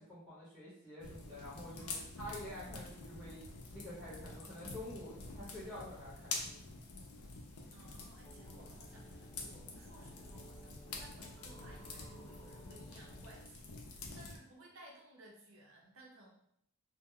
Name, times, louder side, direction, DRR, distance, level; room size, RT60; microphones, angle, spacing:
voice 1, 0.0-3.5 3.7-6.7, left 1 dB, ahead, -12 dB, 0.8 m, -48 dB
sound 1, 1.0-14.4, left 3 dB, 85° left, 0.4 m, -47 dB
voice 2, 1.7-2.1 7.7-16.3, right 1 dB, 65° right, -2 dB, 0.6 m, -59 dB
sound 2, 8.2-13.4, right 1 dB, 25° left, 0.3 m, -59 dB
2.1 x 2.1 x 3.6 m, 0.72 s
head